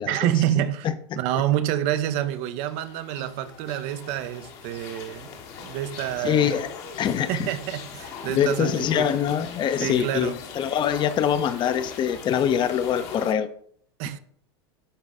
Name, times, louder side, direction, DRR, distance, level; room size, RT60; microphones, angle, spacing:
voice 1, 0.0-0.9 1.2-5.3 5.6-6.6 7.3-9.1 9.8-10.3 14.0-14.2, right 12 dB, 55° right, 0.7 m, -27 dB
voice 2, 0.8-1.2 6.2-6.7 7.0-7.5 8.3-13.5, left 9 dB, 35° left, 0.7 m, -24 dB
sound 1, 2.2-13.3, left 6 dB, 50° left, 1.2 m, -40 dB
10.0 x 4.0 x 3.6 m
hypercardioid pair, 95°, 13 cm